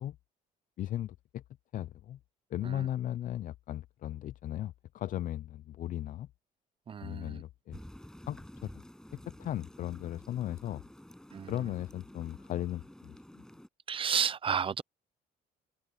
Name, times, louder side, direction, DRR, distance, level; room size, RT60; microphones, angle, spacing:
voice 1, 0.8-1.4 1.7-2.2 2.5-6.3 7.0-7.8 8.3-8.8 9.1-10.8 11.5-13.4, left 12 dB, 50° left, 0.5 m, -37 dB
voice 2, 6.9-7.4 11.3-11.5 13.9-14.8, right 7 dB, 30° right, 0.6 m, -32 dB
sound 1, 7.7-13.7, left 1 dB, 5° left, 7.7 m, -51 dB
cardioid pair, 110°, 17 cm